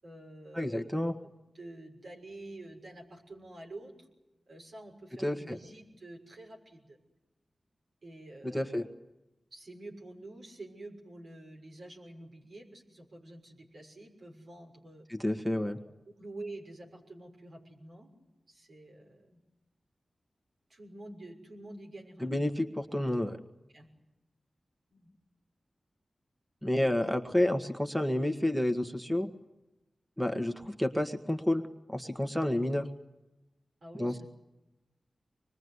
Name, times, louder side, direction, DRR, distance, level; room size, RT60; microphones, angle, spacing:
voice 1, 0.0-4.1 4.5-7.0 8.0-8.9 9.5-15.1 16.2-18.1 18.5-19.4 20.7-22.3 23.7-23.9 24.9-25.1 33.8-34.3, right 2 dB, 70° right, 1 dB, 6.3 m, -48 dB
voice 2, 0.5-1.1 5.2-5.6 8.5-8.9 15.1-15.8 22.2-23.4 26.6-29.3 30.2-31.6 31.9-32.9 34.0-34.1, left 1 dB, 5° right, 7 dB, 1.6 m, -30 dB
25.0 x 21.5 x 9.7 m, 0.99 s
cardioid pair, 55°, 0 cm